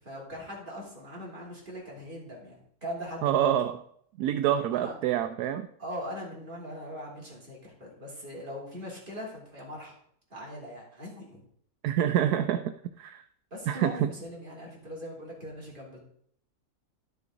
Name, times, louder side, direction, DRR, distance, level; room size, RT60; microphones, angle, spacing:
voice 1, 0.0-2.5 2.8-3.5 4.7-5.0 5.8-9.9 10.3-11.4 13.5-16.0, equal, 35° right, -4 dB, 3.1 m, -40 dB
voice 2, 3.2-3.8 4.2-5.7 11.8-13.2 13.7-14.1, right 10 dB, 85° right, 8 dB, 1.1 m, -27 dB
11.5 x 6.8 x 3.8 m, 0.67 s
omnidirectional pair, 1.6 m